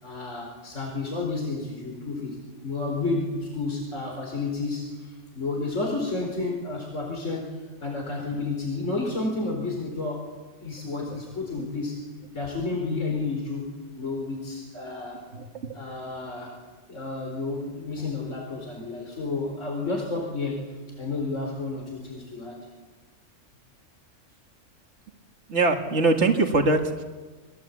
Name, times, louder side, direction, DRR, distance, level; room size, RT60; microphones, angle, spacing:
voice 1, 0.0-10.3 10.6-12.0 12.3-13.7 14.0-15.3 15.7-16.6 16.9-22.6, left 3 dB, 75° left, 1 dB, 4.8 m, -31 dB
voice 2, 15.3-15.7 25.5-27.0, right 3 dB, 60° right, 4 dB, 2.3 m, -23 dB
29.0 x 22.5 x 8.4 m, 1.3 s
omnidirectional pair, 1.3 m